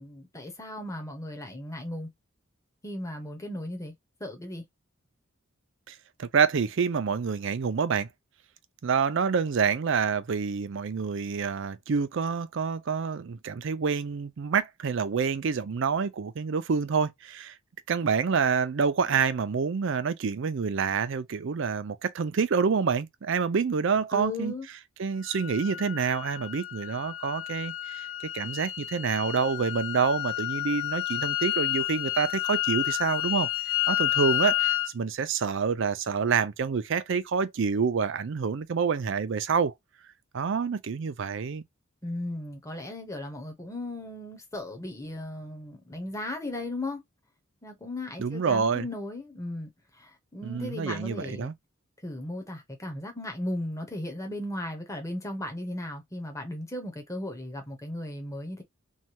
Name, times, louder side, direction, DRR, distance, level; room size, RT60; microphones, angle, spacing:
voice 1, 0.0-2.1 2.8-3.9 4.2-4.6 24.1-24.7 42.0-47.0 47.6-51.5 52.0-58.6, left 1 dB, 15° left, 0.8 m, -36 dB
voice 2, 5.9-8.1 8.8-17.5 17.9-24.5 25.0-28.0 28.3-33.5 33.9-39.7 40.3-41.6 48.2-48.9 50.4-51.5, right 6 dB, 60° right, 0.4 m, -27 dB
sound 1, 25.2-34.9, left 15 dB, 75° left, 0.4 m, -30 dB
3.2 x 2.3 x 2.8 m
head